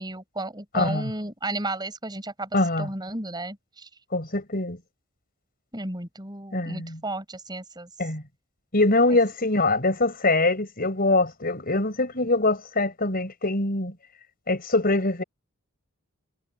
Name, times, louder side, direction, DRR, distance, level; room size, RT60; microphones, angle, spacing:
voice 1, 0.0-3.9 5.7-7.9, right 2 dB, 20° right, 5.9 m, -33 dB
voice 2, 0.7-1.1 2.5-2.9 4.1-4.8 6.5-7.0 8.0-8.2 8.7-13.9 14.5-15.2, left 2 dB, 40° left, 5.8 m, -23 dB
head